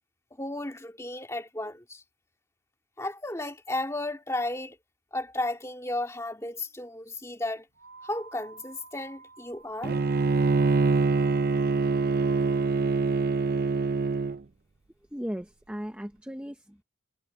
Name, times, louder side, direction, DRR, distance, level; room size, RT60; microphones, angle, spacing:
voice 1, 0.4-2.0 3.0-4.8 5.1-7.7 8.0-10.0, left 2 dB, 15° left, 2.2 m, -34 dB
sound 1, 7.7-12.7, right 4 dB, 65° right, 7.6 m, -50 dB
Bowed string instrument, 9.8-14.4, right 4 dB, 50° right, 0.5 m, -24 dB
voice 2, 15.1-16.8, equal, 5° right, 0.8 m, -37 dB
head